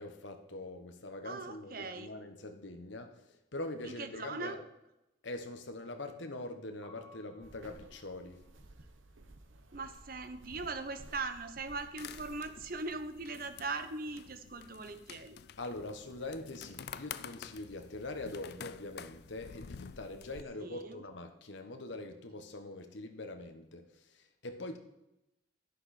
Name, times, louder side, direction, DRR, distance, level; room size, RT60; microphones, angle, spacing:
voice 1, 0.0-4.6 5.2-8.4 15.6-24.8, left 2 dB, 70° left, 1.3 m, -43 dB
voice 2, 1.2-2.1 3.8-4.6 9.7-15.4 20.6-21.0, right 3 dB, 50° right, 0.9 m, -40 dB
Piano, 6.8-12.6 12.9-14.5 14.7-21.2, left 1 dB, 15° left, 4.8 m, -66 dB
sound 1, 7.4-12.8, right 2 dB, 90° right, 1.1 m, -55 dB
sound 2, 12.0-20.4, left 7 dB, 55° left, 0.4 m, -49 dB
11.0 x 10.5 x 4.3 m
head